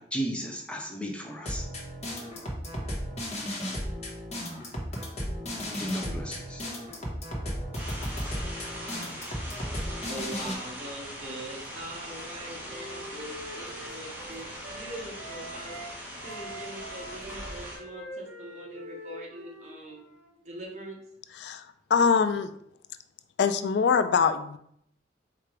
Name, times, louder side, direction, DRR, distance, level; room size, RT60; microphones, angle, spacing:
voice 1, 0.0-1.7 5.7-6.7, equal, 5° left, 1 dB, 0.4 m, -35 dB
sound 1, 1.4-10.5, equal, 40° left, 1.1 m, -35 dB
sound 2, 7.7-17.8, equal, 10° right, 1.0 m, -41 dB
voice 2, 9.5-15.8 16.2-20.0 20.4-21.0, right 1 dB, 40° right, -1 dB, 1.0 m, -42 dB
Wind instrument woodwind instrument, 12.1-15.9 16.2-20.3, equal, 65° right, 1.7 m, -45 dB
voice 3, 21.4-22.5 23.4-24.6, left 6 dB, 70° left, 10 dB, 0.3 m, -24 dB
4.6 x 2.5 x 4.5 m, 0.71 s
head